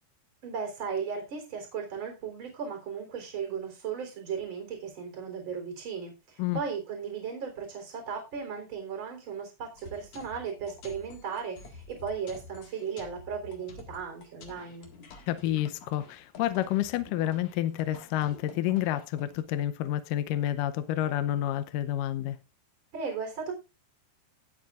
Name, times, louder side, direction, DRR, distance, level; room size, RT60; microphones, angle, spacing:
voice 1, 0.4-14.9 22.9-23.5, right 6 dB, 30° right, 4.1 m, -36 dB
sound 1, 9.8-19.4, left 4 dB, 50° left, 2.6 m, -50 dB
voice 2, 15.3-22.4, left 12 dB, 80° left, 1.9 m, -29 dB
18.0 x 8.3 x 2.5 m
omnidirectional pair, 4.7 m